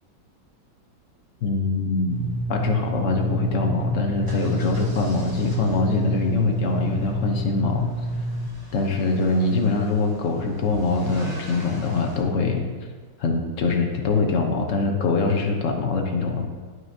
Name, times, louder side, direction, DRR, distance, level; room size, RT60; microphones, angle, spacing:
voice 1, 1.4-7.9 8.7-12.6 13.2-16.5, left 3 dB, 55° left, 2 dB, 1.0 m, -23 dB
sound 1, 2.1-8.5, right 2 dB, 70° right, 1.1 m, -29 dB
sound 2, 4.1-12.2, equal, 15° right, 1.1 m, -42 dB
11.0 x 6.1 x 2.7 m, 1.5 s
omnidirectional pair, 2.0 m